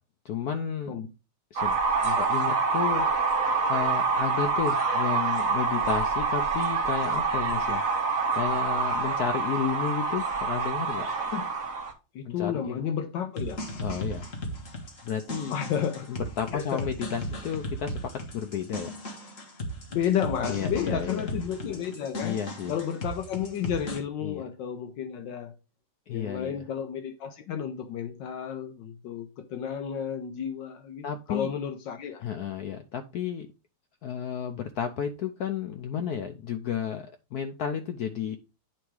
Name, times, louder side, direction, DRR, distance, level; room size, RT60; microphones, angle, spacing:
voice 1, 0.2-0.9 1.5-3.1 3.7-7.8 8.3-11.1 12.3-12.8 13.8-14.3 15.0-15.6 16.1-18.9 20.5-21.3 22.2-22.7 24.2-24.4 26.1-26.5 31.0-31.5 32.2-33.5 34.0-38.4, left 8 dB, 90° left, 0.8 m, -32 dB
sound 1, 1.6-11.9, right 4 dB, 45° right, 1.4 m, -26 dB
voice 2, 12.1-13.7 15.5-16.1 16.5-16.9 19.9-22.4 22.7-25.5 26.1-32.5, left 8 dB, 70° left, 1.2 m, -32 dB
sound 2, 13.4-24.0, equal, 40° left, 1.7 m, -36 dB
9.1 x 3.5 x 4.7 m
omnidirectional pair, 2.3 m